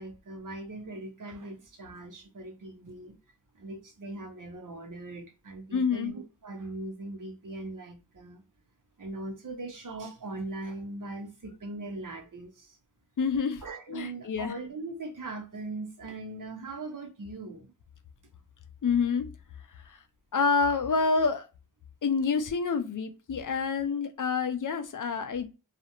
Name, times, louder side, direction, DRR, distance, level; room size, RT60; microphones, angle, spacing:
voice 1, 0.0-3.1 3.5-8.4 9.0-12.8 13.6-17.7, right 2 dB, 65° right, 0.7 m, -40 dB
voice 2, 5.7-6.1 13.2-13.6 13.9-14.6 18.8-19.3 20.3-21.5 22.0-25.5, left 5 dB, 65° left, 0.5 m, -27 dB
2.4 x 2.0 x 2.8 m
wide cardioid pair, 50°, 34 cm